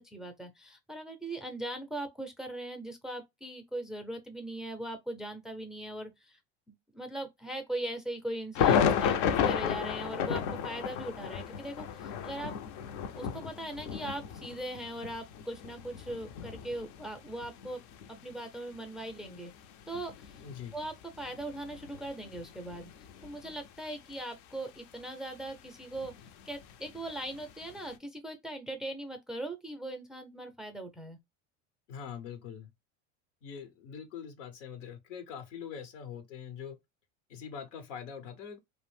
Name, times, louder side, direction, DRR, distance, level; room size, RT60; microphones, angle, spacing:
voice 1, 0.0-6.4 6.7-12.5 13.1-17.8 18.2-19.5 19.9-20.1 20.7-22.9 23.2-26.1 26.5-31.2, right 1 dB, ahead, 0.5 m, -40 dB
sound 1, 8.5-23.7 24.1-24.2 25.5-28.0, left 8 dB, 55° left, 0.5 m, -34 dB
voice 2, 20.4-20.8 31.9-32.7 33.4-36.7 37.3-38.6, left 7 dB, 85° left, 0.9 m, -43 dB
2.5 x 2.0 x 3.1 m
supercardioid pair, 100°, 35 cm